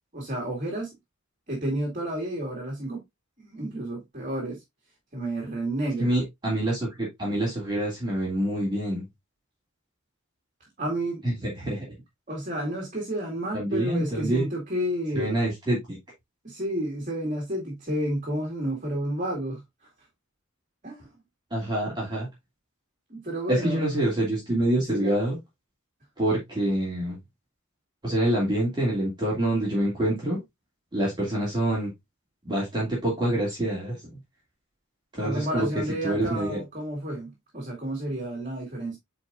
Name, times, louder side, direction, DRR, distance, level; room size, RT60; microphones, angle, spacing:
voice 1, 0.1-0.9 1.5-3.0 3.4-4.6 5.1-6.1 10.8-11.2 12.3-15.4 16.4-19.6 20.8-21.1 23.1-23.9 24.9-25.2 35.2-39.0, right 1 dB, 35° right, 2.4 m, -31 dB
voice 2, 6.0-9.1 11.2-11.9 13.5-14.5 15.1-16.0 21.5-22.3 23.5-25.4 26.2-27.2 28.0-30.4 30.9-31.9 32.4-34.2 35.1-35.7 36.0-36.6, right 1 dB, 20° right, 2.7 m, -26 dB
9.5 x 4.3 x 2.5 m
head